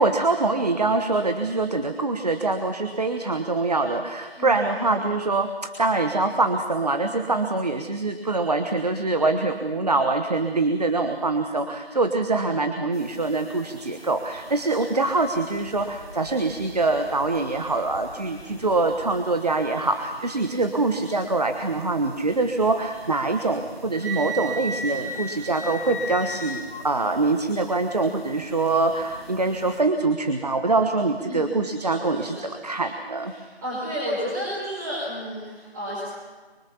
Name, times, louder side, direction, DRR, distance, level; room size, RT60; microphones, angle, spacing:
voice 1, 0.0-33.3, right 3 dB, 40° right, 6 dB, 1.3 m, -24 dB
voice 2, 4.4-4.9 31.2-32.5 33.2-36.2, equal, 20° right, -8 dB, 5.4 m, -32 dB
sound 1, 12.9-29.8, equal, 80° right, 6.1 m, -46 dB
Wind instrument woodwind instrument, 24.0-26.8, right 1 dB, 55° left, 2.1 m, -32 dB
25.0 x 24.5 x 7.1 m, 1.3 s
figure-of-eight pair, 165°, 32 cm